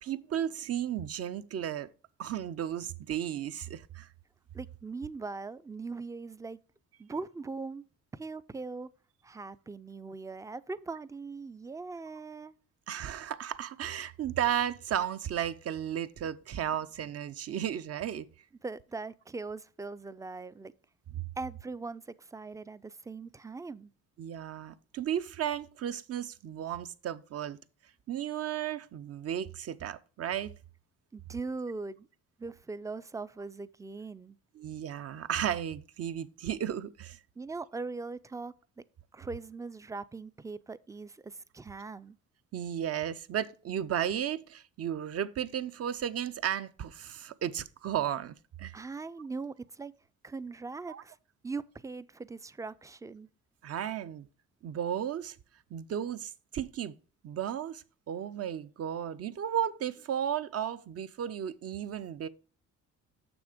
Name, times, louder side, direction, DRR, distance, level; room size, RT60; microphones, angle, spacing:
voice 1, 0.0-1.9 2.2-4.1 12.9-18.3 21.1-21.2 24.2-27.6 28.1-30.5 34.6-37.2 42.5-48.8 50.9-51.0 53.6-54.3 54.6-55.4 55.7-56.9 57.2-62.3, right 10 dB, 55° right, 0.6 m, -34 dB
voice 2, 4.5-6.6 7.0-7.8 8.1-8.9 9.2-12.5 18.6-20.7 21.4-23.9 31.1-32.1 32.4-34.4 37.4-38.5 39.1-42.2 48.7-49.9 50.2-51.2 51.4-53.3, right 3 dB, 10° right, 0.3 m, -40 dB
6.7 x 6.1 x 5.0 m
cardioid pair, 90°, 30 cm